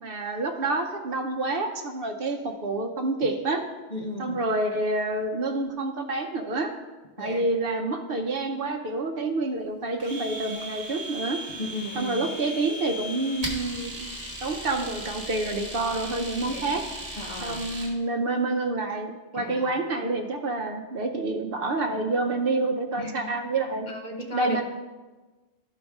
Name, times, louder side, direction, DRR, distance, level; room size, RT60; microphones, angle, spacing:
voice 1, 0.0-3.6 4.2-6.7 7.2-11.4 11.9-14.1 14.4-16.8 17.4-23.9 24.3-24.6, right 2 dB, 60° right, 5 dB, 0.8 m, -28 dB
voice 2, 3.9-4.4 7.2-7.5 11.6-12.2 16.5-16.8 17.2-17.6 19.3-19.7 23.0-23.3 23.9-24.6, left 1 dB, 45° left, 1 dB, 1.0 m, -35 dB
Domestic sounds home sounds, 10.0-17.9, right 1 dB, 35° right, 1.3 m, -37 dB
12.5 x 5.1 x 3.5 m, 1.2 s
omnidirectional pair, 1.1 m